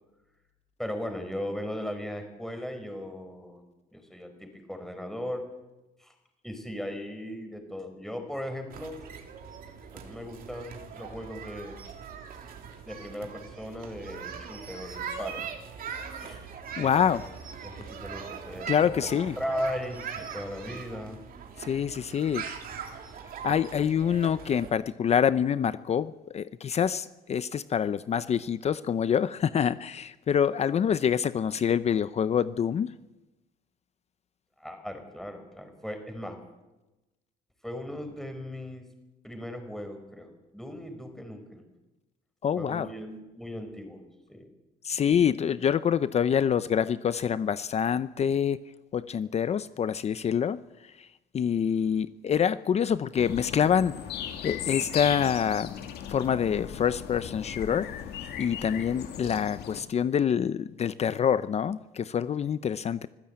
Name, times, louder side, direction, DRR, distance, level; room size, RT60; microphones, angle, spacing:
voice 1, 0.8-3.6 3.9-5.4 6.0-6.1 6.4-8.9 9.9-11.8 12.8-15.4 16.2-16.4 16.8-16.9 17.6-19.0 19.4-21.2 34.6-36.4 37.6-38.8 39.2-41.6 42.5-44.0 44.3-44.5 58.7-58.9, equal, ahead, 5 dB, 4.8 m, -37 dB
sound 1, 8.7-24.7, right 7 dB, 60° right, 3.3 m, -41 dB
voice 2, 16.8-17.2 18.7-19.4 21.6-22.4 23.4-32.9 42.4-42.9 44.8-48.6 48.9-51.1 51.3-54.0 54.4-55.8 56.1-57.9 58.4-63.1, left 8 dB, 40° left, 15 dB, 0.7 m, -26 dB
sound 2, 53.2-59.8, left 9 dB, 70° left, 2.6 m, -37 dB
25.0 x 15.0 x 8.8 m, 1.1 s
cardioid pair, 110°, 17 cm